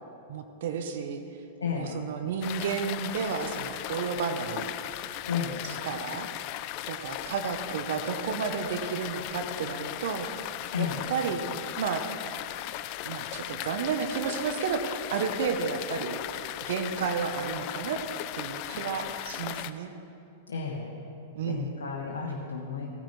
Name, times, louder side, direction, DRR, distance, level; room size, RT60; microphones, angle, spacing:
voice 1, 0.3-1.2 1.7-4.7 5.6-6.3 6.9-10.5 10.8-11.4 11.8-12.1 13.0-16.2 16.6-18.0 18.3-19.9 21.4-21.8, right 6 dB, 60° right, 7 dB, 0.8 m, -32 dB
voice 2, 1.6-2.0 5.3-5.6 10.7-11.0 20.5-20.9 21.4-22.9, left 6 dB, 75° left, -2 dB, 1.1 m, -32 dB
sound 1, 2.4-19.7, left 14 dB, 45° left, 0.4 m, -37 dB
17.0 x 10.5 x 3.2 m, 2.8 s
figure-of-eight pair, 100°, 0 cm